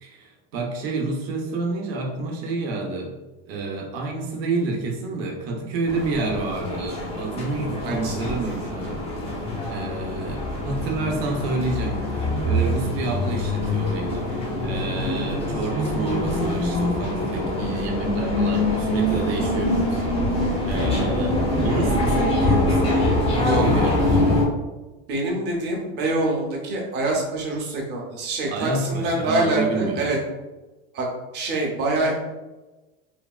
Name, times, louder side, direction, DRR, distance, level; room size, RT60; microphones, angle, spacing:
voice 1, 0.0-3.2 3.5-9.0 9.7-24.5 28.5-30.1, right 3 dB, 80° right, 1 dB, 0.8 m, -29 dB
sound 1, 5.9-24.4, left 1 dB, 20° left, 0.5 m, -24 dB
voice 2, 7.8-8.1 23.4-23.6 25.1-30.2 30.9-31.1 31.3-32.1, right 2 dB, 35° right, -1 dB, 0.7 m, -25 dB
3.4 x 2.2 x 2.3 m, 1.1 s
supercardioid pair, 150°, 30 cm